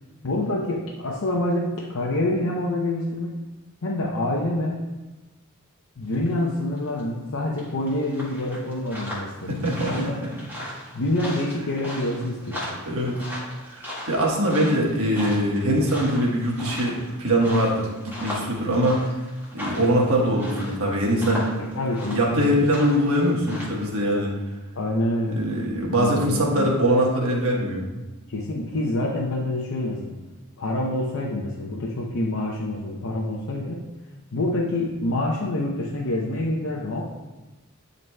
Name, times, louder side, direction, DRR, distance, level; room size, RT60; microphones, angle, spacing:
voice 1, 0.2-3.3 3.8-4.9 6.0-10.2 10.9-12.7 21.6-22.5 24.8-25.4 25.9-26.7 28.3-30.1 30.6-33.8 34.3-37.0, left 1 dB, 70° left, -3 dB, 0.7 m, -27 dB
sound 1, 6.1-6.4 6.7-7.0 7.6-23.9, left 1 dB, 10° right, 1.7 m, -37 dB
voice 2, 9.5-10.1 12.9-13.2 13.7-19.0 19.5-21.5 22.1-24.3 25.3-27.8, equal, 70° right, -2 dB, 1.3 m, -22 dB
10.5 x 4.0 x 2.2 m, 1.1 s
head